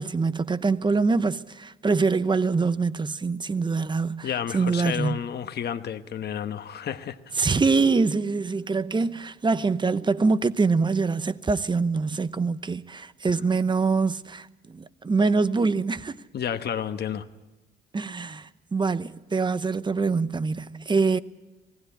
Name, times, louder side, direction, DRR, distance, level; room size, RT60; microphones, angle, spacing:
voice 1, 0.0-4.3 4.5-5.2 7.4-16.2 17.9-21.2, right 4 dB, 25° right, 0.8 m, -24 dB
voice 2, 4.2-7.2 16.3-17.3, left 8 dB, 55° left, 1.2 m, -31 dB
20.0 x 15.5 x 10.0 m
cardioid pair, 90°, 20 cm